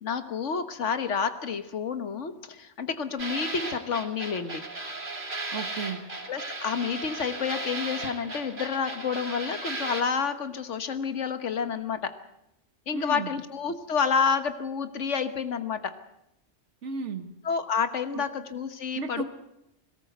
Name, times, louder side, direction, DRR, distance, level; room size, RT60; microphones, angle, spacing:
voice 1, 0.0-4.6 6.3-12.1 12.9-15.9 17.4-19.2, left 6 dB, 90° left, 10 dB, 1.6 m, -29 dB
sound 1, 3.2-10.0, right 2 dB, 60° right, 3.6 m, -36 dB
voice 2, 5.5-6.0 12.9-13.3 16.8-17.3 18.1-18.3 18.9-19.2, right 4 dB, 85° right, 6 dB, 1.8 m, -34 dB
21.5 x 18.5 x 8.0 m, 0.84 s
omnidirectional pair, 1.2 m